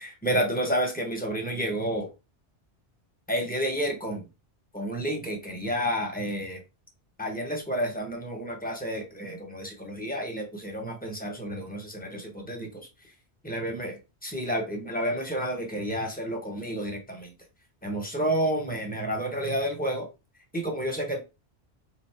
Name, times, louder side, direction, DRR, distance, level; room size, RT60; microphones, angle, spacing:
voice 1, 0.0-2.1 3.3-4.3 4.7-6.6 7.2-12.9 13.4-14.0 14.2-17.3 17.8-20.1 20.5-21.2, equal, 10° left, 0.9 m, -30 dB
3.0 x 2.7 x 4.3 m
omnidirectional pair, 1.2 m